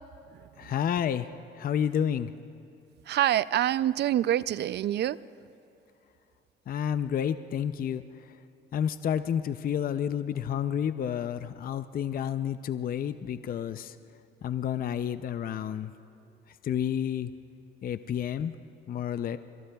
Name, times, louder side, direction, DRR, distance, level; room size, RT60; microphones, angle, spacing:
voice 1, 0.6-2.3 6.7-8.3 8.7-14.0 14.4-15.9 16.6-17.3 17.8-18.6 18.9-19.4, left 9 dB, 45° left, 12 dB, 0.5 m, -30 dB
voice 2, 3.1-5.2, right 12 dB, 60° right, 18 dB, 0.4 m, -26 dB
25.5 x 23.0 x 2.3 m, 2.7 s
cardioid pair, 90°, 20 cm